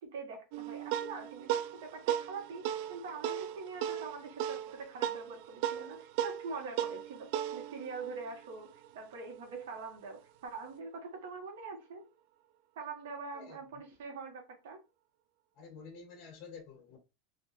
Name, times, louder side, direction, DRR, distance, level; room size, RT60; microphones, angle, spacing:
voice 1, 0.0-12.0 12.7-14.8, right 4 dB, 80° right, 1.6 m, -44 dB
sound 1, 0.5-9.3, right 11 dB, 60° right, 0.3 m, -37 dB
voice 2, 15.5-17.0, left 5 dB, 40° left, 1.6 m, -50 dB
3.4 x 2.8 x 3.1 m
supercardioid pair, 130°, 0 cm